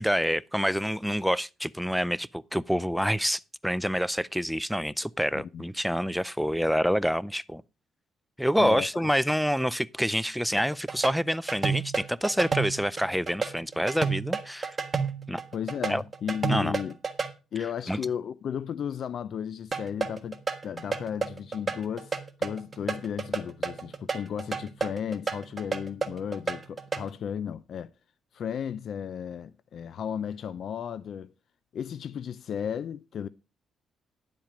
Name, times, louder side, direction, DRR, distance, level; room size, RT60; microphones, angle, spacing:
voice 1, 0.0-7.6 8.4-14.8 15.3-15.4 15.9-16.0 16.5-16.8 17.9-18.0, equal, ahead, 0.5 m, -27 dB
voice 2, 5.3-5.6 8.6-9.0 15.5-17.0 17.5-20.4 20.6-27.9 28.3-31.3 31.7-33.3, left 8 dB, 60° left, 0.5 m, -34 dB
sound 1, 10.6-17.3 19.7-27.1, right 5 dB, 30° right, 1.5 m, -31 dB
10.5 x 7.4 x 5.0 m
cardioid pair, 90°, 0 cm